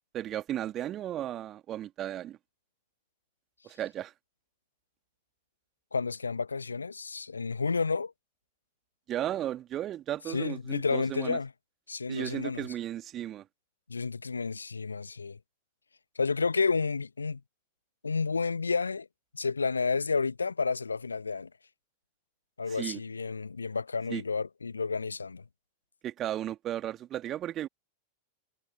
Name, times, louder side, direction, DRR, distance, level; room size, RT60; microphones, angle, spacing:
voice 1, 0.1-2.4 3.6-4.1 9.1-11.4 12.1-13.5 22.7-23.0 24.1-24.2 26.0-27.7, right 12 dB, 30° right, 2.0 m, -35 dB
voice 2, 5.9-8.1 10.3-11.5 11.9-12.7 13.9-15.4 16.1-17.4 18.0-19.1 19.3-21.5 22.6-25.4, left 4 dB, 75° left, 1.3 m, -31 dB
figure-of-eight pair, 90°, 0 cm